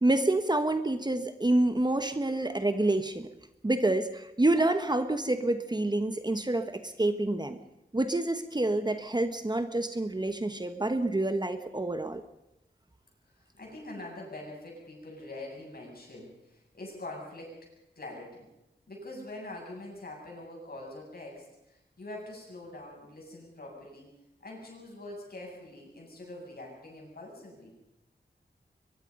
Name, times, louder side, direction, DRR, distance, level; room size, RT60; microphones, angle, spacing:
voice 1, 0.0-3.3 3.6-7.6 7.9-12.2, right 2 dB, 25° right, 9 dB, 1.2 m, -28 dB
voice 2, 13.3-17.6 18.0-18.5 18.9-24.1 24.4-27.7, left 2 dB, 55° left, -1 dB, 8.0 m, -44 dB
22.5 x 22.5 x 5.5 m, 0.89 s
wide cardioid pair, 100°, 18 cm